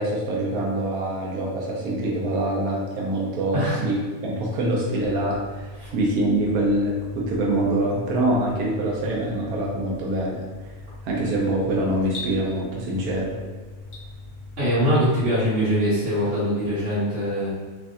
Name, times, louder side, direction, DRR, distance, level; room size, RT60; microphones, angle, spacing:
voice 1, 0.0-10.7 11.0-13.4, right 1 dB, 90° right, -3 dB, 1.2 m, -25 dB
sound 1, 4.9-14.9, left 2 dB, 10° left, 0.7 m, -41 dB
sound 2, 7.6-14.7, left 3 dB, 50° left, 1.0 m, -46 dB
voice 2, 14.6-17.5, equal, 55° right, -13 dB, 1.6 m, -22 dB
3.5 x 3.2 x 2.5 m, 1.4 s
omnidirectional pair, 1.5 m